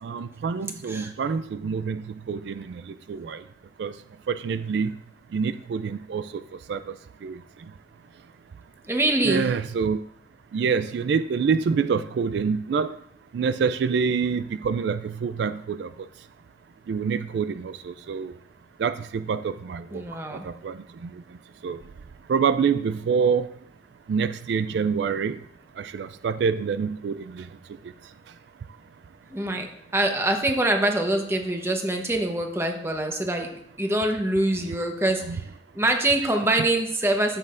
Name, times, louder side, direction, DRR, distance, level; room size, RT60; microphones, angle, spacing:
voice 1, 0.0-3.4 3.8-3.9 4.3-4.9 5.3-6.4 6.7-6.9 7.2-7.4 9.3-10.0 10.5-12.9 13.3-15.9 16.9-18.3 18.8-20.0 20.3-21.1 21.6-21.8 22.3-23.5 24.1-25.4 25.8-27.5 35.3-35.4, right 6 dB, 70° right, 12 dB, 0.3 m, -26 dB
voice 2, 8.8-9.5 19.9-20.5 29.3-35.5 35.7-37.4, right 1 dB, 15° right, 3 dB, 0.9 m, -25 dB
13.5 x 7.4 x 2.5 m, 0.73 s
head